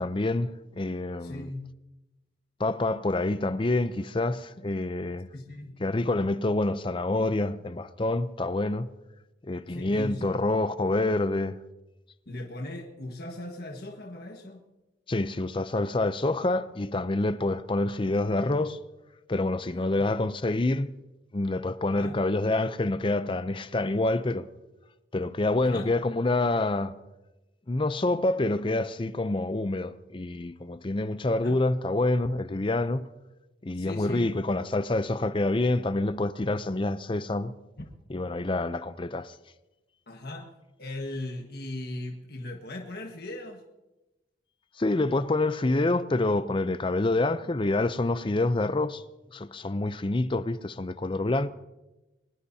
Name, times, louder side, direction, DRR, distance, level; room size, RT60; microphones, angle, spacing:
voice 1, 0.0-1.5 2.6-5.3 5.8-8.9 9.4-11.6 15.1-18.8 19.3-20.9 21.3-24.5 25.1-27.0 27.7-33.1 33.6-37.5 38.1-39.4 44.8-49.0 49.3-51.5, left 2 dB, 25° left, 0.5 m, -27 dB
voice 2, 1.2-1.7 5.3-5.8 9.7-10.3 12.2-14.6 19.7-20.1 22.0-22.2 25.6-25.9 31.4-31.6 33.7-34.4 37.8-37.9 40.1-40.5 40.8-43.6, left 1 dB, 55° left, 1.6 m, -38 dB
23.0 x 20.0 x 2.8 m
head